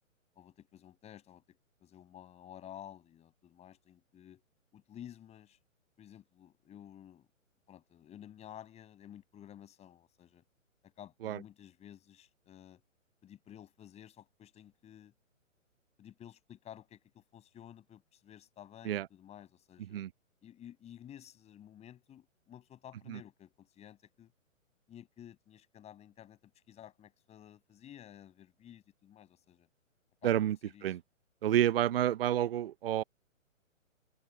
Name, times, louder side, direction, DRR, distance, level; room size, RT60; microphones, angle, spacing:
voice 1, 0.3-4.4 4.7-5.6 6.0-7.3 7.7-10.4 10.8-12.8 13.2-15.1 16.0-20.0 20.4-24.3 24.9-29.7 30.2-30.9, left 10 dB, 15° left, 6.3 m, -53 dB
voice 2, 30.2-30.6 30.8-31.0 31.4-33.0, right 11 dB, 45° right, 0.6 m, -29 dB
figure-of-eight pair, 135°, 39 cm